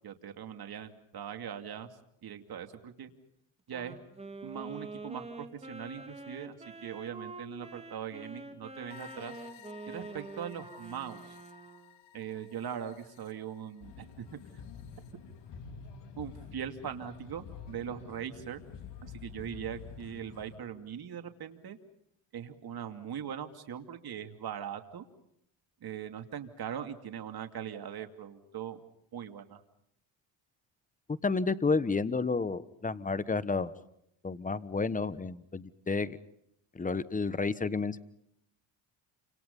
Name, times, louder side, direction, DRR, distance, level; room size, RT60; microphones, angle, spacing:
voice 1, 0.0-1.9 2.2-3.1 3.7-4.0 4.4-9.4 9.9-11.4 12.1-14.4 16.2-18.6 19.0-21.8 22.3-25.0 25.8-28.8 29.1-29.6, right 8 dB, 55° right, 6 dB, 2.7 m, -41 dB
Wind instrument woodwind instrument, 3.7-12.0, right 2 dB, 15° right, 3.2 m, -46 dB
sound 1, 8.9-15.1, left 11 dB, 85° left, 2.3 m, -56 dB
sound 2, 13.8-20.6, left 6 dB, 65° left, 3.1 m, -48 dB
voice 2, 31.1-33.7 34.2-36.2 36.7-38.0, left 4 dB, 15° left, 16 dB, 1.2 m, -31 dB
29.0 x 26.5 x 5.5 m, 0.75 s
cardioid pair, 90°, 46 cm